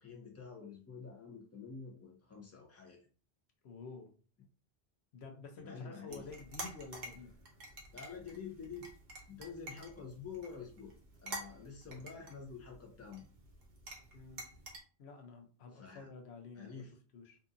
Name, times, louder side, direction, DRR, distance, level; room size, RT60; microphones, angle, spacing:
voice 1, 0.0-3.0 5.6-6.3 7.9-8.9 9.3-10.9 11.2-13.2 15.7-16.1 16.5-16.9, left 5 dB, 20° left, 0 dB, 0.5 m, -48 dB
voice 2, 3.6-4.1 5.1-7.3 14.1-14.5 15.0-17.4, left 4 dB, 75° left, 4 dB, 0.9 m, -50 dB
sound 1, 6.1-14.8, right 2 dB, 50° right, 0.8 m, -49 dB
2.6 x 2.5 x 2.4 m, 0.39 s
omnidirectional pair, 1.1 m